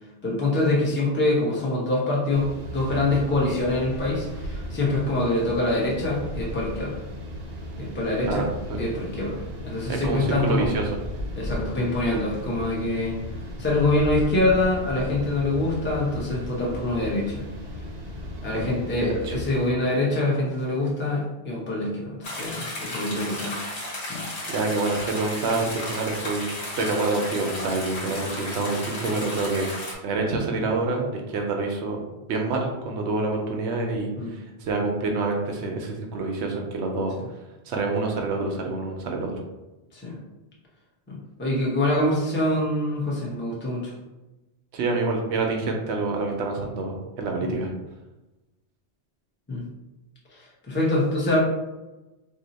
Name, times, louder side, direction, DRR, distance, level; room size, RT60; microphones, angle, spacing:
voice 1, 0.2-7.0 7.8-8.5 8.8-10.7 11.4-13.2 13.6-17.4 18.4-23.6 24.1-24.2 34.2-34.3 39.9-40.2 41.1-43.9 47.4-47.5 49.5-49.6 50.3-51.4, left 2 dB, 15° left, -5 dB, 0.6 m, -25 dB
sound 1, 2.3-19.7, equal, 55° right, 0.5 m, -35 dB
voice 2, 9.9-10.9 18.5-18.7 19.0-19.4 24.5-26.5 26.8-29.7 30.0-32.0 32.3-37.2 37.7-39.4 44.7-47.7, right 3 dB, 90° right, 1 dB, 0.9 m, -27 dB
sound 2, 22.2-30.0, left 1 dB, 75° left, 1.1 m, -34 dB
2.7 x 2.0 x 3.9 m, 1.1 s
omnidirectional pair, 1.1 m